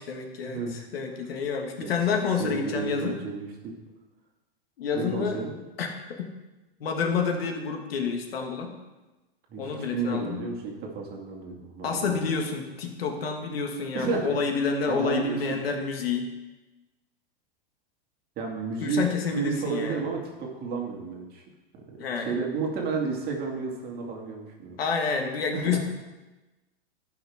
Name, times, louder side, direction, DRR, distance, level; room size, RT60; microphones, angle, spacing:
voice 1, 0.0-3.2 4.8-5.4 5.8-6.3 6.8-8.7 9.6-10.5 11.8-16.3 18.8-20.0 22.0-22.3 24.8-25.8, left 5 dB, 75° left, 3 dB, 1.8 m, -29 dB
voice 2, 2.4-3.7 4.9-5.5 9.5-12.2 13.9-14.3 14.9-15.4 18.4-19.1 19.3-21.4 22.2-24.8 25.5-25.8, right 4 dB, 30° right, 0 dB, 2.3 m, -32 dB
15.5 x 5.9 x 3.6 m, 1.1 s
hypercardioid pair, 130°, 29 cm